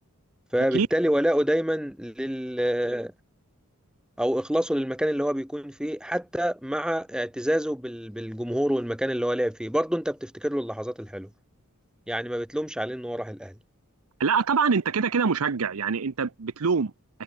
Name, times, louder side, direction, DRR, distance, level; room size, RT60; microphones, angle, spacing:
voice 1, 0.5-3.1 4.2-11.3 12.1-13.5, equal, 5° right, 1.1 m, -27 dB
voice 2, 14.2-16.9, right 5 dB, 75° right, 0.7 m, -24 dB
head